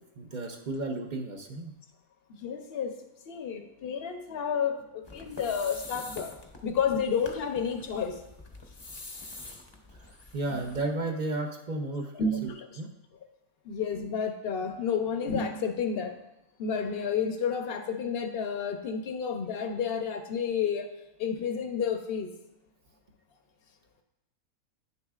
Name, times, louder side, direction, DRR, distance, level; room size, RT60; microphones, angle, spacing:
voice 1, 0.2-1.7 10.3-12.1 12.4-12.9, right 2 dB, 45° right, 3 dB, 0.7 m, -33 dB
voice 2, 2.4-2.9 3.3-6.3 6.6-8.2 10.5-10.6 12.1-12.7 13.6-16.1 16.6-20.9 21.2-22.3, left 6 dB, 55° left, 6 dB, 0.8 m, -30 dB
sound 1, 5.0-10.9, left 2 dB, 25° left, 0.6 m, -46 dB
9.6 x 6.8 x 2.4 m, 0.88 s
omnidirectional pair, 1.5 m